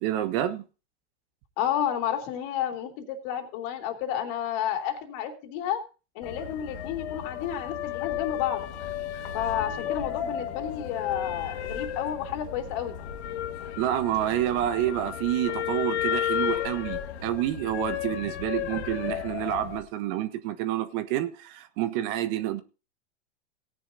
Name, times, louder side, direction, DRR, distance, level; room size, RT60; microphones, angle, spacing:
voice 1, 0.0-0.6 13.8-22.6, right 12 dB, 45° right, 1.3 m, -28 dB
voice 2, 1.6-5.8 6.1-8.6 9.3-13.0, left 9 dB, 50° left, 3.0 m, -31 dB
sound 1, 6.2-19.8, left 10 dB, 65° left, 1.6 m, -33 dB
18.0 x 10.0 x 2.7 m
hypercardioid pair, 110°, 36 cm